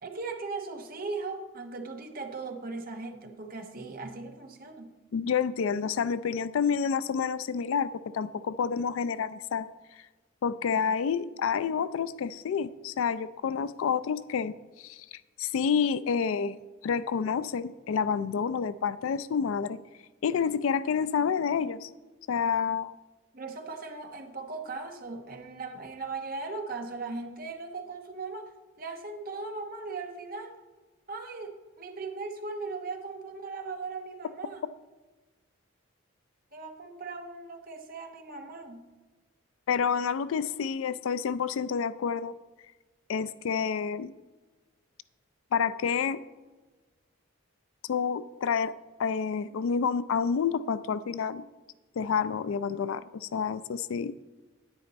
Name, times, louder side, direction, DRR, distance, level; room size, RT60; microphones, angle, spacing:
voice 1, 0.0-4.9 23.3-28.5 28.8-30.5 31.1-34.6 36.5-38.9, right 3 dB, 45° right, 4 dB, 1.0 m, -38 dB
voice 2, 5.1-9.7 10.4-16.6 16.8-19.8 20.2-21.9 22.3-23.0 39.7-42.3 43.1-44.1 45.5-46.2 47.8-48.7 49.0-51.4 52.0-54.1, left 6 dB, 80° left, 16 dB, 0.4 m, -29 dB
9.8 x 9.6 x 4.1 m, 1.3 s
head